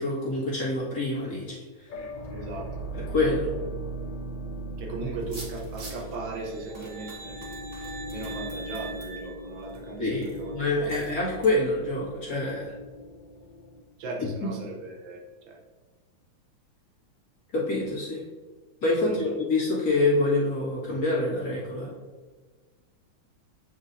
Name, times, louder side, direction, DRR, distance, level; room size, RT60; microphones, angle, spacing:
voice 1, 0.0-1.5 2.9-3.5 5.0-5.1 10.0-12.7 17.5-18.2 18.8-21.9, left 2 dB, 50° left, -6 dB, 2.2 m, -26 dB
sound 1, 1.9-13.8, right 1 dB, 70° left, 1.3 m, -39 dB
voice 2, 2.3-2.9 4.8-7.7 8.1-11.0 14.0-15.2 15.5-15.6 19.0-19.3, right 3 dB, 70° right, 0 dB, 1.5 m, -38 dB
sound 2, 5.2-6.2 6.7-9.8 10.2-10.4 10.8-11.2 11.4-11.5, right 1 dB, 30° right, 1.2 m, -46 dB
sound 3, 6.2-10.2, right 4 dB, 90° right, 2.0 m, -44 dB
8.7 x 4.4 x 2.6 m, 1.4 s
omnidirectional pair, 2.3 m